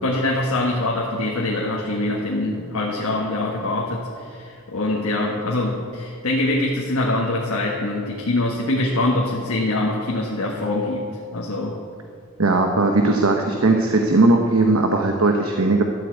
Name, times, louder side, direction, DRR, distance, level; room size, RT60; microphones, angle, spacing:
voice 1, 0.0-11.8, left 2 dB, 85° left, -2 dB, 1.5 m, -24 dB
voice 2, 12.4-15.8, right 2 dB, 75° right, 3 dB, 1.0 m, -18 dB
12.5 x 7.9 x 8.1 m, 2.3 s
head